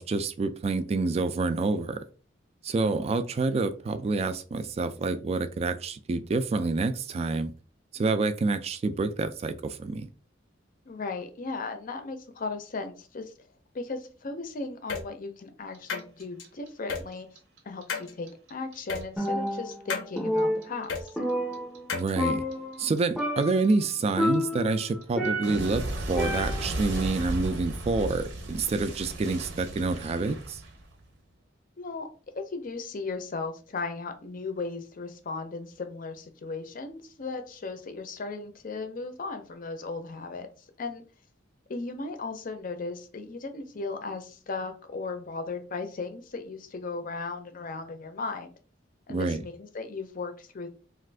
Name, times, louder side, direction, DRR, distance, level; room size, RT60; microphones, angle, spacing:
voice 1, 0.0-2.0 2.6-7.5 7.9-10.1 21.9-22.5 22.8-30.6 49.1-49.4, right 3 dB, 35° right, 0.3 m, -28 dB
voice 2, 10.9-13.3 13.7-17.4 17.6-21.2 31.8-32.1 32.3-41.0 41.7-48.5 49.1-50.7, left 3 dB, 45° left, 0.5 m, -36 dB
sound 1, 14.9-15.0 15.9-16.4 16.9-17.0 17.9-18.1 18.9-19.0 19.9-20.1 20.9-21.0 21.9-22.1, left 5 dB, 85° left, 0.6 m, -32 dB
Clock, 15.7-18.7 19.0-22.0 22.3-31.1, right 1 dB, 70° right, 0.7 m, -35 dB
Percussion, 19.2-19.9 20.2-21.9 22.2-22.9 23.2-23.7 24.2-25.7 26.2-26.8, left 1 dB, ahead, 0.7 m, -29 dB
2.5 x 2.4 x 3.3 m
head